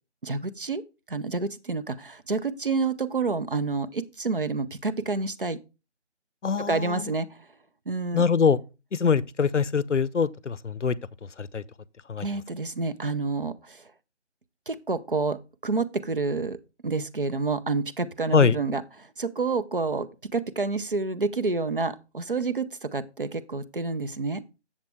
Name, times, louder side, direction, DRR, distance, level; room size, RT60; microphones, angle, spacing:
voice 1, 0.2-0.8 1.1-5.6 6.6-7.5 7.9-8.2 12.2-13.9 14.7-16.6 16.8-24.4, right 3 dB, 50° right, 0.6 m, -29 dB
voice 2, 6.4-7.1 8.1-8.6 8.9-11.0 11.4-11.6 12.1-12.3 18.3-18.6, left 6 dB, 85° left, 0.6 m, -23 dB
7.3 x 7.3 x 3.3 m
figure-of-eight pair, 160°, 35 cm